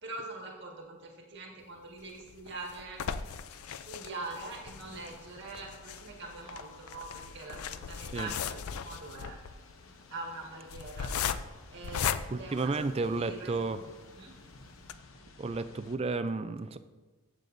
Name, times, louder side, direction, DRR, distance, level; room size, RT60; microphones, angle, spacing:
voice 1, 0.0-3.0 3.6-9.4 10.1-11.1 11.7-13.9 14.2-14.3, right 2 dB, 50° right, -1 dB, 1.8 m, -43 dB
sound 1, 2.0-13.4 13.9-14.0 14.3-14.4 14.8-14.9, left 7 dB, 90° left, 0.4 m, -38 dB
sound 2, 3.1-16.0, left 3 dB, 70° left, 0.9 m, -55 dB
voice 2, 12.3-13.8 15.4-16.8, right 3 dB, 25° right, 12 dB, 0.3 m, -32 dB
14.5 x 7.6 x 2.7 m, 1.3 s
head